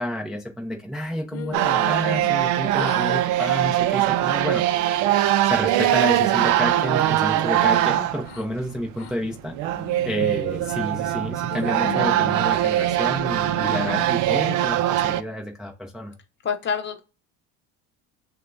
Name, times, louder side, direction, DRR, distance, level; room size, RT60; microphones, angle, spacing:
voice 1, 0.0-4.6 5.0-9.6 10.0-16.2, equal, ahead, 0 dB, 0.6 m, -30 dB
sound 1, 1.3-2.5 2.7-3.2 3.6-4.0 4.5-5.1 5.6-6.3 6.7-8.5 9.0-9.1 9.7-10.1 10.7-11.2 11.5-13.1 13.6-14.2, left 8 dB, 90° left, 0.8 m, -38 dB
sound 2, 1.5-8.3 8.7-8.8 9.0-15.2, right 13 dB, 60° right, 0.5 m, -22 dB
voice 2, 16.4-17.0, left 6 dB, 30° left, 6 dB, 0.9 m, -26 dB
6.4 x 2.3 x 2.5 m, 0.32 s
cardioid pair, 130°, 35 cm